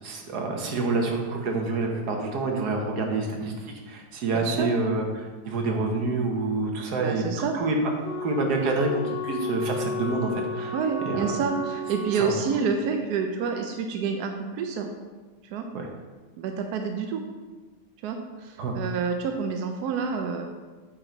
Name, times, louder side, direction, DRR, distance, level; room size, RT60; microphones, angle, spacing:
voice 1, 0.0-7.2 7.5-7.7 8.2-10.7 11.1-11.2 12.2-12.3 15.7-15.9 18.6-18.8, right 3 dB, 60° right, 2 dB, 1.5 m, -27 dB
voice 2, 4.3-4.7 7.0-7.5 10.7-14.9 15.4-15.6 16.4-17.2 18.0-20.5, right 5 dB, 75° right, 4 dB, 0.9 m, -28 dB
Wind instrument woodwind instrument, 8.0-12.3, left 1 dB, 65° left, 1.6 m, -33 dB
8.8 x 4.5 x 3.9 m, 1.3 s
omnidirectional pair, 2.2 m